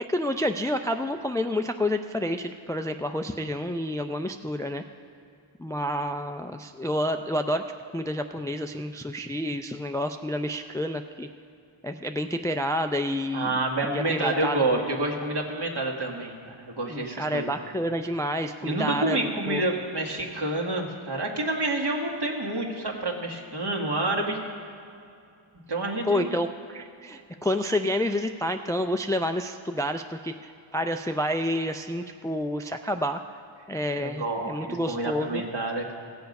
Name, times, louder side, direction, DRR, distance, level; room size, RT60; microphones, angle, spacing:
voice 1, 0.1-4.8 5.6-7.6 7.9-11.3 11.8-14.8 16.9-19.2 19.5-19.6 26.1-33.2 33.7-35.4, left 1 dB, 10° left, 7 dB, 0.3 m, -29 dB
voice 2, 13.3-17.5 18.6-24.4 25.7-26.3 34.0-35.9, right 2 dB, 55° right, -1 dB, 1.8 m, -28 dB
16.5 x 7.0 x 5.3 m, 2.5 s
wide cardioid pair, 70°, 47 cm